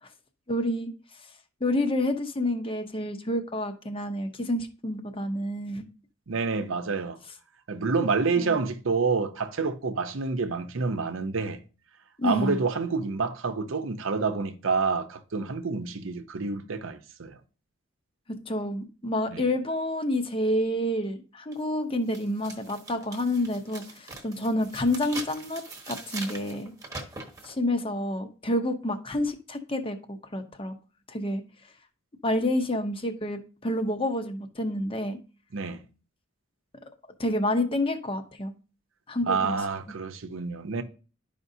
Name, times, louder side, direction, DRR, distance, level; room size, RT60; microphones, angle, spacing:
voice 1, 0.5-0.9 1.6-5.8 8.4-8.6 12.2-12.6 18.3-26.7 27.4-30.7 31.1-31.4 32.2-35.2 37.2-38.5 39.1-39.6, left 1 dB, 25° left, 0.8 m, -29 dB
voice 2, 6.3-7.2 7.7-11.6 12.2-17.4 19.3-19.4 35.5-35.8 39.3-40.8, right 4 dB, 75° right, 0.7 m, -28 dB
sound 1, 21.5-21.6 22.1-27.5, right 3 dB, 15° right, 1.1 m, -41 dB
11.0 x 5.0 x 2.7 m
head